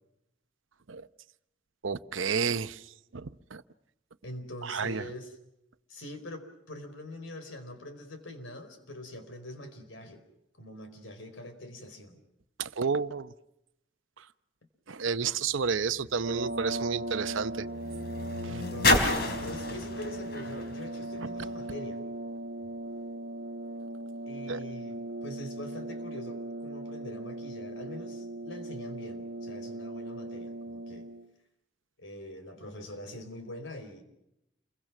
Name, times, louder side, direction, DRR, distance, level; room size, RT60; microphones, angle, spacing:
voice 1, 1.8-2.8 3.1-3.6 4.6-5.0 12.6-13.3 14.9-17.7 24.5-24.6, right 5 dB, 90° right, 12 dB, 0.8 m, -30 dB
voice 2, 4.2-5.4 5.9-10.2 10.6-12.2 18.5-22.0 24.3-31.1 32.0-34.0, left 1 dB, 85° left, 7 dB, 4.6 m, -44 dB
Car Crash M-S, 15.3-21.8 22.6-22.7, left 2 dB, 55° left, 3.4 m, -32 dB
sound 1, 16.2-31.3, right 1 dB, 65° right, 1.4 m, -38 dB
29.0 x 23.5 x 6.1 m, 0.86 s
head